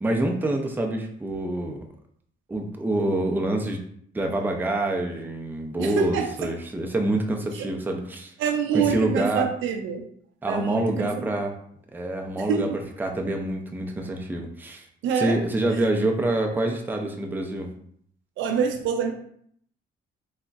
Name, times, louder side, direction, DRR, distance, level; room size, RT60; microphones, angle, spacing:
voice 1, 0.0-1.8 2.5-3.8 4.1-8.3 8.7-9.5 10.4-11.5 11.9-12.7 13.0-14.9 15.2-17.7, right 1 dB, 10° right, 2 dB, 0.4 m, -26 dB
voice 2, 5.8-6.5 7.5-7.7 8.4-10.0 10.5-11.3 12.4-12.7 15.0-15.4 18.4-19.1, right 7 dB, 80° right, 4 dB, 0.5 m, -26 dB
3.6 x 2.1 x 2.3 m, 0.65 s
cardioid pair, 90°, 20 cm